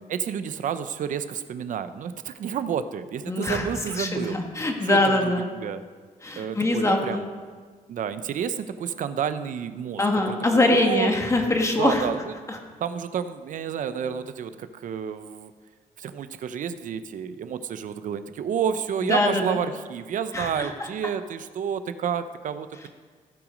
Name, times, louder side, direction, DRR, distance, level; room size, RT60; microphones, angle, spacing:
voice 1, 0.1-4.4 4.8-5.8 6.4-7.3 7.9-11.1 11.8-12.3 12.8-15.5 16.0-22.9, right 8 dB, 60° right, 11 dB, 0.6 m, -30 dB
voice 2, 3.3-3.7 4.0-5.5 6.2-7.2 10.0-12.1 12.5-12.6 19.1-19.6 20.3-20.7, left 2 dB, 20° left, 2 dB, 1.4 m, -23 dB
16.0 x 6.0 x 5.1 m, 1.5 s
wide cardioid pair, 150°, 15 cm